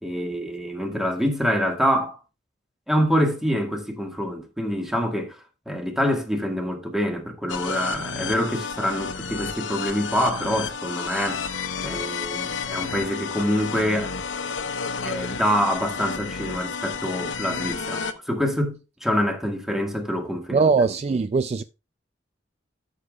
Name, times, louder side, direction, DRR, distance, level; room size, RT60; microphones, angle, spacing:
voice 1, 0.0-2.2 2.9-14.1 15.0-20.6, equal, ahead, 1.7 m, -26 dB
sound 1, 7.5-18.1, left 5 dB, 90° left, 0.9 m, -31 dB
voice 2, 20.5-21.6, right 4 dB, 35° right, 0.3 m, -21 dB
13.0 x 6.7 x 2.3 m
head